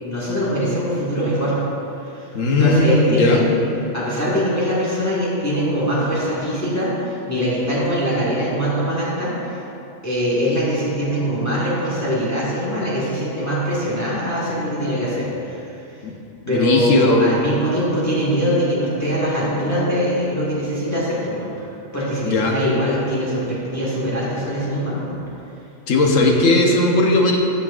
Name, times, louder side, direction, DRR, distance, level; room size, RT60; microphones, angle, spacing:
voice 1, 0.0-1.5 2.0-2.3 2.6-3.5 3.9-9.6 10.0-15.7 16.5-21.5 21.9-25.2, equal, 15° left, -8 dB, 1.5 m, -22 dB
voice 2, 2.3-3.5 16.0-16.1 16.5-17.4 22.2-22.6 25.9-27.4, left 2 dB, 85° left, 0 dB, 1.3 m, -17 dB
14.0 x 5.8 x 2.5 m, 2.8 s
omnidirectional pair, 1.3 m